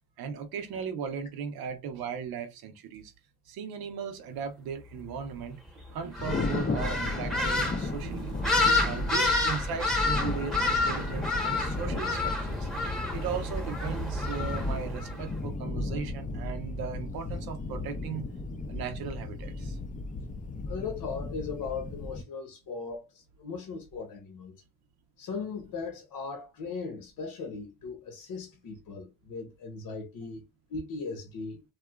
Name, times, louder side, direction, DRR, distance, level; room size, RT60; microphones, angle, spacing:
voice 1, 0.2-3.1 3.5-12.7 13.1-18.3 18.7-19.8, right 6 dB, 85° right, 0.7 m, -37 dB
sound 1, 6.1-15.2, left 2 dB, ahead, 0.9 m, -29 dB
Thunder, 6.2-22.2, left 2 dB, 25° left, 0.4 m, -35 dB
voice 2, 20.7-24.5 25.2-31.6, left 4 dB, 70° left, 0.8 m, -38 dB
2.8 x 2.3 x 2.2 m
cardioid pair, 75°, 36 cm